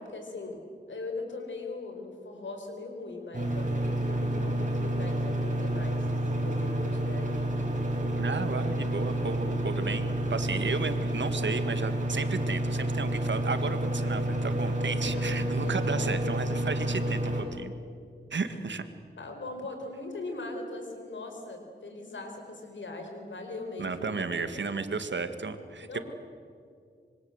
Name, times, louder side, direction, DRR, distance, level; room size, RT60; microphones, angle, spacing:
voice 1, 0.0-7.4 9.8-10.1 15.1-15.5 15.9-16.5 18.5-18.6 19.2-24.4 25.8-26.0, left 2 dB, 90° left, 3 dB, 4.9 m, -40 dB
sound 1, 3.3-17.4, right 1 dB, 40° right, 6.3 m, -29 dB
voice 2, 8.2-17.7 18.3-18.8 23.8-26.0, right 4 dB, 75° right, 9 dB, 1.8 m, -33 dB
26.0 x 24.0 x 8.1 m, 2.3 s
wide cardioid pair, 70°, 19 cm